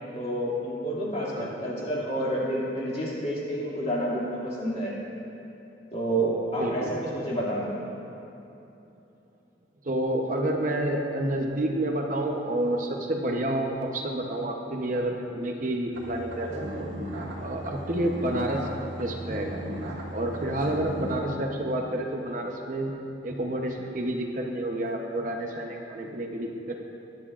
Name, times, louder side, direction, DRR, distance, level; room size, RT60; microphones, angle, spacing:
voice 1, 0.1-4.9 5.9-7.7, right 1 dB, 35° left, -6 dB, 2.2 m, -29 dB
voice 2, 6.6-6.9 9.9-16.9 17.4-18.7 19.0-19.6 20.1-23.0 23.2-26.8, right 1 dB, 45° right, 1 dB, 0.8 m, -29 dB
sound 1, 15.9-21.2, equal, 75° right, 1.8 m, -36 dB
20.5 x 9.6 x 2.5 m, 2.8 s
head